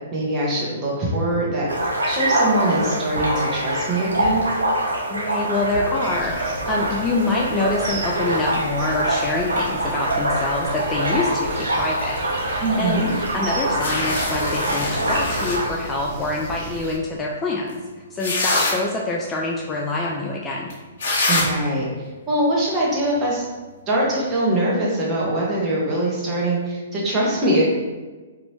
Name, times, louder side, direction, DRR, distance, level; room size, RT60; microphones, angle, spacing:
voice 1, 0.1-4.5 12.6-13.1 21.3-23.4 23.9-27.7, right 1 dB, 25° right, -5 dB, 1.0 m, -23 dB
sound 1, 1.7-15.7, right 1 dB, 80° right, 0.6 m, -25 dB
voice 2, 5.1-12.2 12.8-13.0 13.3-17.8 18.1-20.7, left 2 dB, 15° left, -2 dB, 0.3 m, -25 dB
sound 2, 6.0-17.0, right 2 dB, 40° right, 0.6 m, -35 dB
sound 3, 13.8-15.6 17.7-17.8 18.2-18.7 20.7-20.8 21.0-21.4, left 2 dB, 55° left, 1.0 m, -24 dB
2.9 x 2.5 x 3.2 m, 1.3 s
figure-of-eight pair, 125°, 0 cm